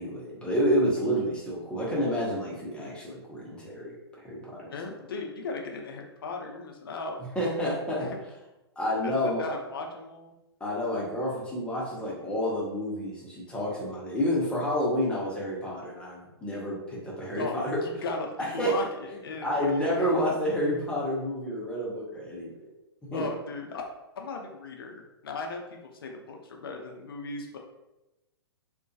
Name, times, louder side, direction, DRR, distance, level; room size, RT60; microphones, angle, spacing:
voice 1, 0.0-4.7 7.3-8.1 8.8-9.4 10.6-17.8 18.4-18.7 19.4-22.7 23.1-23.2, equal, 5° left, -5 dB, 0.7 m, -29 dB
voice 2, 4.7-7.2 8.0-8.2 9.0-10.3 17.3-20.3 23.1-23.8 24.2-27.6, left 3 dB, 60° left, 2 dB, 0.5 m, -37 dB
2.4 x 2.2 x 2.6 m, 0.97 s
figure-of-eight pair, 115°, 14 cm